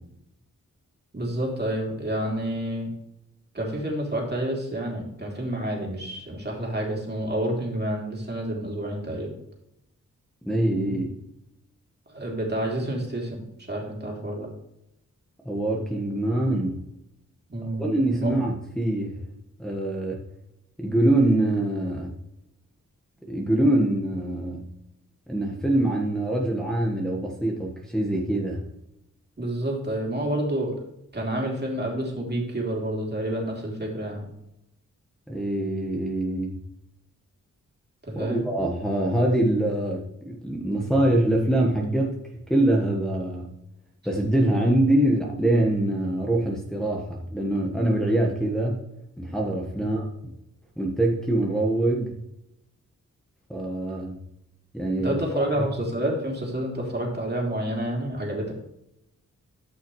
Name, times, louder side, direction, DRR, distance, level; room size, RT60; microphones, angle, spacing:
voice 1, 1.1-2.9 3.5-9.3 10.8-11.0 12.1-13.4 13.7-14.5 17.5-17.9 18.2-18.4 29.4-30.8 31.1-34.2 38.0-38.5 55.0-58.5, right 1 dB, 30° right, -1 dB, 3.0 m, -29 dB
voice 2, 10.5-11.1 15.4-16.8 17.8-19.1 19.6-20.2 20.8-22.1 23.3-24.6 25.3-28.6 35.3-36.6 38.1-42.2 42.5-43.5 44.0-48.8 49.2-50.3 50.8-52.1 53.5-54.2 54.7-55.2 55.6-55.7, right 1 dB, ahead, -3 dB, 1.4 m, -24 dB
13.0 x 5.7 x 3.2 m, 0.84 s
cardioid pair, 70°, 31 cm